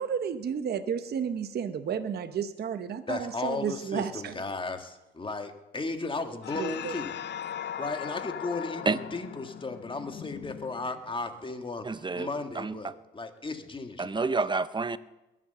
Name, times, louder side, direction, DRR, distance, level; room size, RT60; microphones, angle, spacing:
voice 1, 0.0-4.3 6.6-6.9, right 7 dB, 55° right, 10 dB, 0.9 m, -32 dB
voice 2, 3.1-7.1 7.8-11.9 12.2-14.4, left 3 dB, 25° left, 7 dB, 1.7 m, -35 dB
sound 1, 6.4-11.2, left 9 dB, 60° left, 0.7 m, -39 dB
voice 3, 11.8-12.3 12.5-12.9 14.0-15.0, right 4 dB, 25° right, 15 dB, 0.6 m, -29 dB
21.5 x 7.7 x 6.7 m, 1.0 s
cardioid pair, 90°, 20 cm